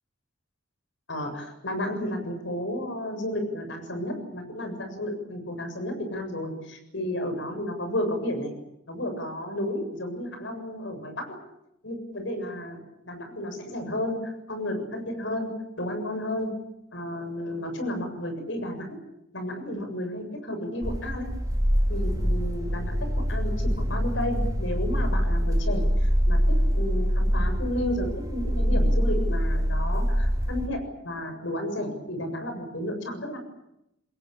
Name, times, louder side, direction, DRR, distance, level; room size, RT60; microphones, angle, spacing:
voice 1, 1.1-8.5 8.9-11.4 11.8-14.2 14.5-15.5 15.8-16.5 16.9-19.0 19.3-21.3 21.9-33.4, left 1 dB, 70° left, 7 dB, 7.3 m, -32 dB
sound 1, 20.8-30.7, equal, 20° right, 2.6 m, -24 dB
26.5 x 21.5 x 8.9 m, 0.84 s
head